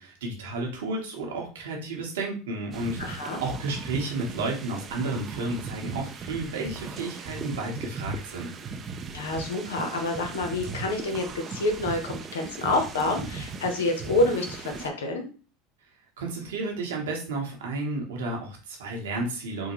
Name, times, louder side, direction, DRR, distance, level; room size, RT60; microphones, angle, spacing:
voice 1, 0.0-8.5 16.2-19.7, right 2 dB, 85° right, 0 dB, 1.1 m, -32 dB
sound 1, 2.7-14.9, right 4 dB, 35° right, 0.4 m, -38 dB
voice 2, 3.0-3.4 9.1-15.2, left 2 dB, 90° left, 4 dB, 0.8 m, -28 dB
3.6 x 2.1 x 3.0 m, 0.37 s
hypercardioid pair, 95°, 0 cm